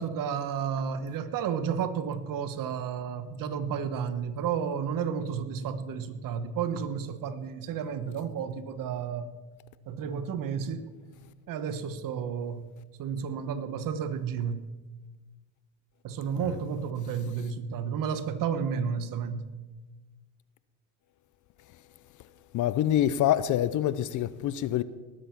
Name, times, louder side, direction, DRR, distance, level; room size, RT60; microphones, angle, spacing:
voice 1, 0.0-9.3 9.9-10.9 11.5-12.7 13.0-14.7 16.0-19.5, right 7 dB, 45° right, 1.4 m, -32 dB
voice 2, 22.5-24.8, left 11 dB, 45° left, 0.7 m, -26 dB
19.0 x 7.9 x 5.9 m
hypercardioid pair, 90°, 44 cm